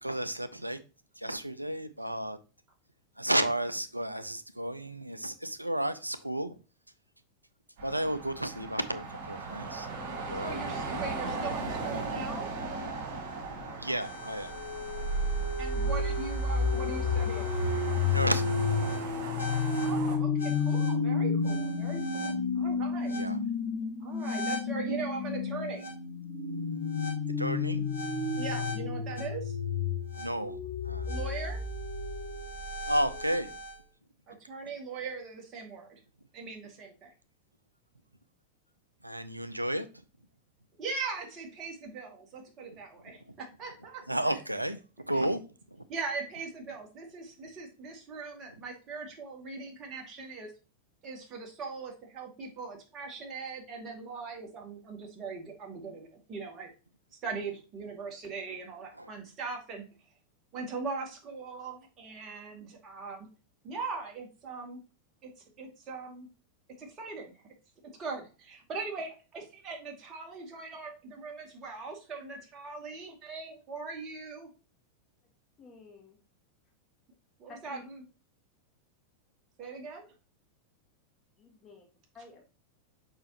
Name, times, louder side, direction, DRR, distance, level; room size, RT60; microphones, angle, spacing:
voice 1, 0.0-0.8 1.2-2.4 3.2-6.6 7.8-9.9 10.3-10.6 13.8-14.6 15.2-15.3 18.1-18.7 23.1-23.4 27.3-27.9 30.1-30.6 30.8-31.1 32.9-33.5 39.0-39.9 44.1-45.8 59.0-59.1, right 1 dB, 85° right, 0.5 m, -32 dB
sound 1, 7.8-20.1, right 3 dB, 50° right, 3.3 m, -39 dB
voice 2, 10.3-12.6 15.6-17.5 19.8-23.2 24.0-25.9 28.4-29.6 31.1-31.6 34.3-36.0 36.3-37.1 40.8-44.4 45.1-45.3 45.9-50.5 51.0-56.7 57.2-59.9 60.5-63.3 63.6-64.8 65.2-65.3 65.6-66.3 66.8-67.3 68.0-74.5 77.4-78.0 79.6-80.1, right 4 dB, 30° right, 2.2 m, -40 dB
sound 2, 14.0-33.7, left 3 dB, 65° left, 2.7 m, -31 dB
voice 3, 75.6-76.2 77.5-77.8 81.4-81.8 82.1-82.4, left 3 dB, 25° left, 2.2 m, -51 dB
6.7 x 5.5 x 2.9 m
figure-of-eight pair, 90°, 0 cm